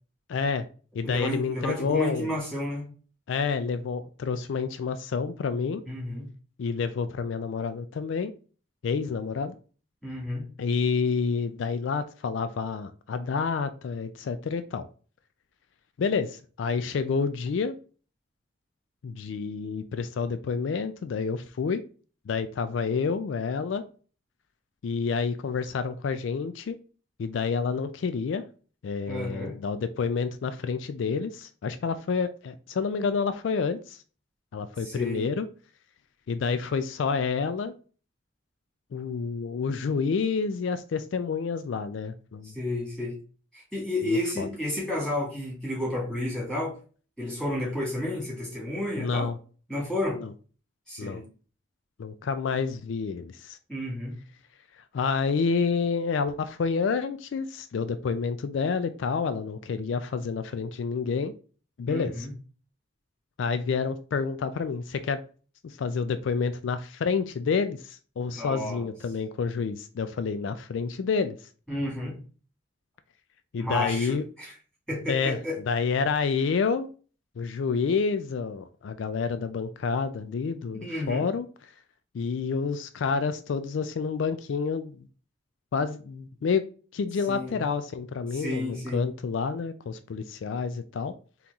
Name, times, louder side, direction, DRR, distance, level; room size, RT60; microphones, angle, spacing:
voice 1, 0.3-0.7 0.9-2.3 3.3-5.8 6.6-8.3 8.8-9.6 10.6-14.8 16.0-17.7 19.0-21.8 22.3-23.8 24.8-26.8 27.2-28.4 28.8-34.0 34.5-35.5 36.3-37.7 38.9-42.5 44.0-44.5 49.0-49.4 50.2-50.3 51.0-51.2 52.0-53.6 54.9-61.3 61.8-62.3 63.4-65.2 65.6-71.4 73.5-74.2 75.1-75.4 75.7-76.9 77.4-81.5 82.1-85.1 85.7-86.7 86.9-91.1, left 5 dB, 75° left, 11 dB, 0.3 m, -29 dB
voice 2, 1.0-2.8 5.9-6.3 10.0-10.4 29.1-29.5 34.8-35.2 42.4-43.1 43.5-46.7 47.2-49.3 49.7-50.2 50.9-51.2 53.7-54.1 61.9-62.3 68.3-68.9 71.7-72.2 73.6-74.5 74.9-75.6 80.8-81.2 87.3-87.6 88.3-89.1, left 1 dB, 5° left, -5 dB, 2.1 m, -31 dB
3.9 x 2.9 x 3.4 m, 0.39 s
head